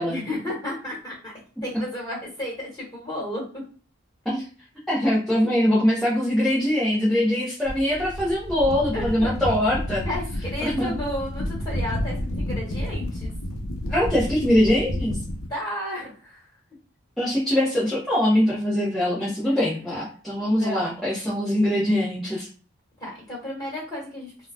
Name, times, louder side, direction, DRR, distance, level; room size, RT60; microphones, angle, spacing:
voice 1, 0.1-1.3 1.6-3.4 8.9-9.3 10.0-13.3 15.5-16.5 19.5-20.0 20.5-20.9 23.0-24.3, left 1 dB, 20° left, -5 dB, 1.5 m, -33 dB
voice 2, 4.9-10.0 10.6-10.9 13.9-15.2 17.2-22.5, left 1 dB, ahead, -10 dB, 0.7 m, -22 dB
sound 1, 7.6-15.5, left 1 dB, 85° left, 0.6 m, -30 dB
3.7 x 2.3 x 2.3 m, 0.39 s
head